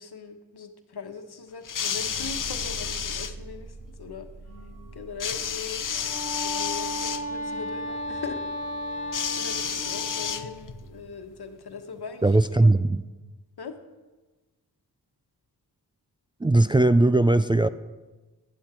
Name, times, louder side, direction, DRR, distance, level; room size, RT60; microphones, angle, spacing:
voice 1, 0.0-4.3 4.9-6.0 6.4-8.4 9.2-12.3 12.6-12.7 13.6-13.8, left 5 dB, 75° left, 6 dB, 1.2 m, -40 dB
sound 1, 1.6-3.3 5.2-7.2 9.1-10.8 11.8-11.9, left 7 dB, 55° left, 0.7 m, -31 dB
sound 2, 1.9-11.6, right 2 dB, 40° right, 2.8 m, -45 dB
Wind instrument woodwind instrument, 5.9-10.6, left 1 dB, 20° left, 2.3 m, -34 dB
voice 2, 12.2-13.0 16.4-17.7, right 2 dB, 15° right, 11 dB, 0.3 m, -19 dB
11.5 x 11.0 x 4.5 m, 1.2 s
cardioid pair, 50°, 39 cm